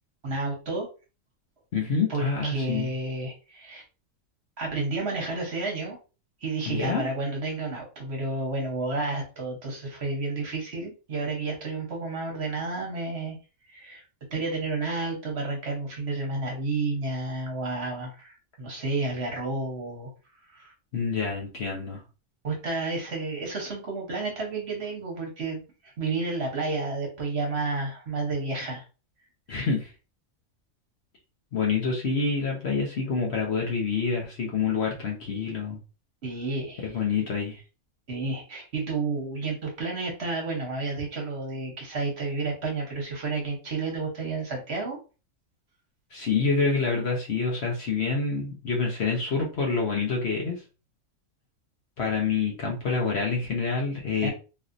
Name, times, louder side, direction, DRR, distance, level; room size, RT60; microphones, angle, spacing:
voice 1, 0.2-0.9 2.1-3.8 4.6-6.0 6.4-13.4 13.7-14.0 14.3-20.1 20.5-20.7 22.4-28.8 36.2-37.0 38.1-45.0 54.2-54.3, right 3 dB, 50° right, 0 dB, 1.2 m, -31 dB
voice 2, 1.7-2.9 6.7-7.0 20.9-22.0 29.5-29.9 31.5-35.8 36.8-37.6 46.1-50.6 52.0-54.3, left 4 dB, 55° left, -1 dB, 1.1 m, -27 dB
3.2 x 2.7 x 2.5 m, 0.32 s
omnidirectional pair, 1.4 m